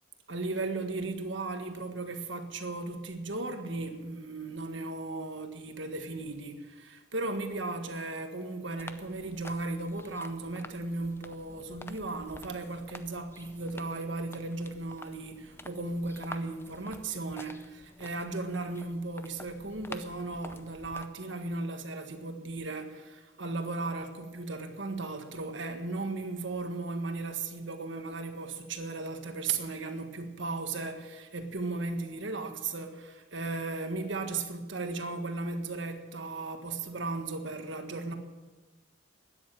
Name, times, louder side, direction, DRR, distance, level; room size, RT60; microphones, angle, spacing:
voice 1, 0.3-38.1, right 3 dB, 60° right, 1.6 m, -36 dB
sound 1, 8.8-21.1, left 2 dB, 10° left, 0.6 m, -49 dB
13.0 x 10.0 x 9.1 m
head